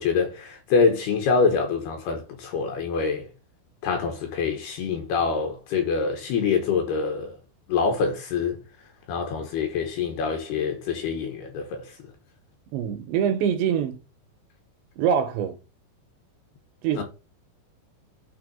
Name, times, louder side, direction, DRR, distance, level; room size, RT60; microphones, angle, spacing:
voice 1, 0.0-3.3 3.8-7.4 7.7-8.6 9.1-12.0 17.0-17.1, left 5 dB, 70° left, 2.7 m, -25 dB
voice 2, 12.7-14.0 15.0-15.6 16.8-17.0, right 8 dB, 80° right, 2.8 m, -24 dB
8.8 x 3.4 x 5.2 m
omnidirectional pair, 5.5 m